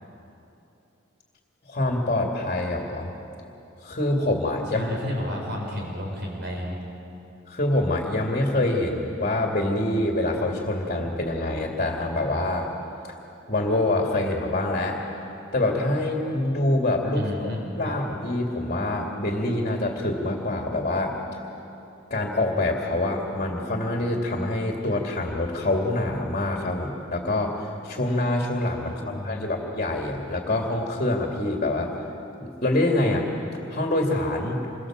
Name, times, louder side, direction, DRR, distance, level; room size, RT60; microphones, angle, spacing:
voice 1, 1.7-3.1 3.8-4.9 7.5-12.7 13.5-15.0 15.5-21.2 22.1-31.9 32.4-33.3 33.7-34.6, left 1 dB, 40° left, 0 dB, 2.5 m, -25 dB
voice 2, 4.7-6.8 17.1-18.0 28.8-29.6, left 1 dB, 60° right, 0 dB, 4.5 m, -32 dB
27.0 x 22.5 x 7.5 m, 2.9 s
head